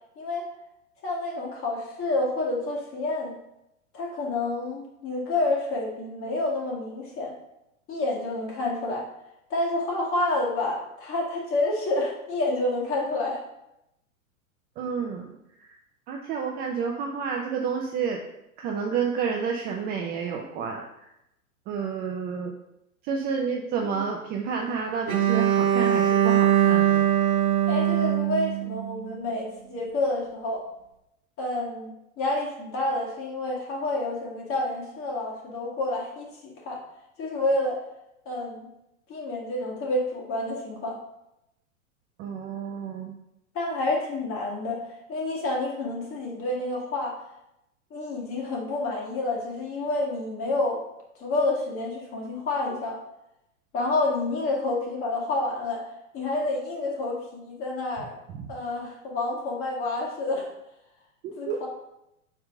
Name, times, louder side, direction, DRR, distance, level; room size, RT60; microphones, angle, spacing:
voice 1, 0.2-0.5 1.0-3.3 3.9-7.3 7.9-9.1 9.5-13.4 23.8-24.0 27.7-30.6 31.4-36.8 37.2-37.8 38.3-38.7 39.1-41.0 43.5-47.2 47.9-50.8 51.2-53.0 53.7-55.8 56.1-58.2 58.5-60.5 61.4-61.7, left 2 dB, 30° left, -1 dB, 2.1 m, -29 dB
voice 2, 14.8-15.4 15.7-15.8 16.1-18.2 18.6-20.9 21.7-22.5 23.0-27.1 42.2-43.1 58.3-58.5 61.2-61.7, right 6 dB, 25° right, 1 dB, 0.5 m, -30 dB
Bowed string instrument, 25.1-29.1, right 10 dB, 70° right, 0.9 m, -22 dB
4.8 x 4.4 x 5.0 m, 0.84 s
hypercardioid pair, 105°, 42 cm